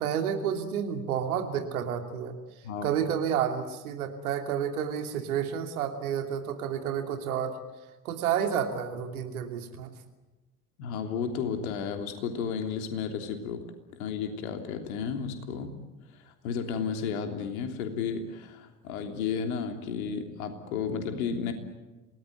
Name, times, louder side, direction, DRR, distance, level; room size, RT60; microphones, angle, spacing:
voice 1, 0.0-2.4 2.8-7.6 8.0-9.9, right 8 dB, 65° right, 5 dB, 2.8 m, -30 dB
voice 2, 10.8-13.6 14.0-15.8 16.2-21.5, left 6 dB, 65° left, 5 dB, 3.3 m, -33 dB
27.5 x 19.0 x 9.3 m, 1.2 s
figure-of-eight pair, 65°, 46 cm